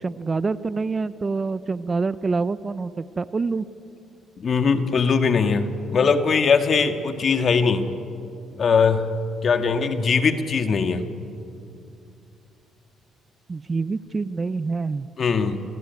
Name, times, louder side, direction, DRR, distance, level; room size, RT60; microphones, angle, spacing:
voice 1, 0.0-3.7 13.5-15.1, right 4 dB, 30° right, 15 dB, 0.8 m, -26 dB
voice 2, 4.4-7.9 8.6-9.1 9.4-11.0 15.2-15.6, left 5 dB, 50° left, 7 dB, 2.1 m, -20 dB
29.0 x 20.5 x 9.5 m, 2.5 s
cardioid pair, 90°, 0 cm